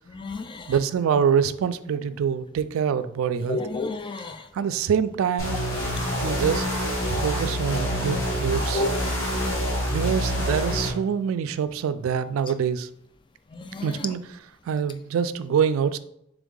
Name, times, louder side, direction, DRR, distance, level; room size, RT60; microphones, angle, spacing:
voice 1, 0.1-0.7 3.5-4.4 8.7-8.9 13.5-13.9, left 3 dB, 25° left, 8 dB, 0.3 m, -30 dB
voice 2, 0.7-3.6 4.5-5.6 6.2-8.9 9.9-12.9 13.8-16.0, right 7 dB, 90° right, 14 dB, 0.3 m, -25 dB
sound 1, 5.4-10.9, equal, 80° left, 1.4 m, -26 dB
3.5 x 3.5 x 3.7 m, 0.75 s
head